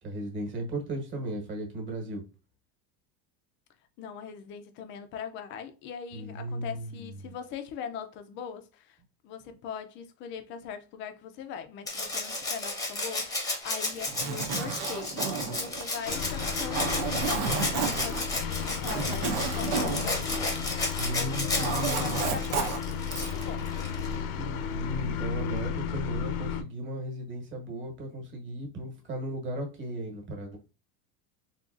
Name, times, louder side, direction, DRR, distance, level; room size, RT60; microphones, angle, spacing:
voice 1, 0.0-2.2 6.1-7.0 7.2-7.3 21.0-22.2 24.1-30.6, right 1 dB, 25° right, 1.2 m, -36 dB
voice 2, 4.0-9.0 9.2-20.5 21.1-22.8 23.1-23.7, left 7 dB, 30° left, 0.4 m, -41 dB
Rattle (instrument), 11.9-24.2 25.6-25.7, left 2 dB, 10° left, 0.7 m, -33 dB
Zipper (clothing), 13.9-21.1 21.3-23.5, right 6 dB, 90° right, 1.0 m, -32 dB
sound 1, 16.0-26.6, left 7 dB, 80° left, 0.7 m, -33 dB
3.9 x 2.8 x 2.4 m
supercardioid pair, 160°, 43 cm